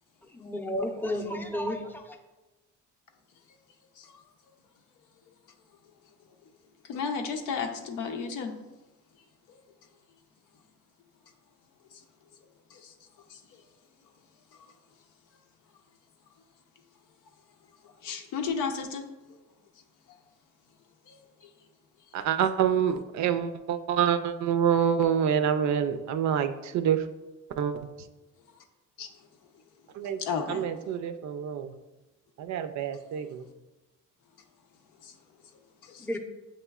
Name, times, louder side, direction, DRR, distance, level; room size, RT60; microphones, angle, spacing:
voice 1, 0.3-2.2 36.0-36.2, left 1 dB, 5° left, 3 dB, 0.5 m, -32 dB
voice 2, 6.8-8.6 9.5-9.6 11.9-12.0 12.7-12.9 13.3-13.4 14.5-14.7 17.8-19.0 21.1-21.5 29.0-29.1 30.1-30.7 35.0-35.1 35.8-36.1, left 5 dB, 90° left, 5 dB, 0.6 m, -34 dB
voice 3, 22.1-27.1 27.6-27.8 29.9-30.2 30.5-31.8 32.4-33.5, right 8 dB, 65° right, 9 dB, 0.4 m, -27 dB
7.4 x 3.0 x 2.3 m, 1.1 s
cardioid pair, 90°, 30 cm